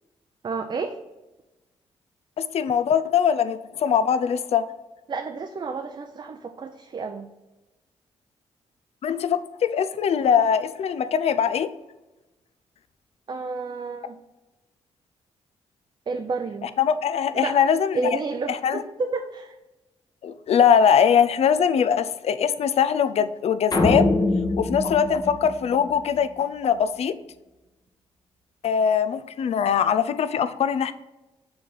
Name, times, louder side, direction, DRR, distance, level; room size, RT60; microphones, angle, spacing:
voice 1, 0.4-1.0 5.1-7.3 13.3-14.2 16.1-16.7 17.3-17.6 17.9-19.6, right 4 dB, 40° right, 5 dB, 0.5 m, -30 dB
voice 2, 2.4-4.6 9.0-11.7 16.6-18.0 18.5-18.8 20.2-24.1 24.6-27.1 28.6-30.9, left 7 dB, 60° left, 11 dB, 0.5 m, -22 dB
sound 1, 23.7-26.2, left 2 dB, 35° left, 1.1 m, -24 dB
6.8 x 3.4 x 4.1 m, 1.0 s
cardioid pair, 70°, 12 cm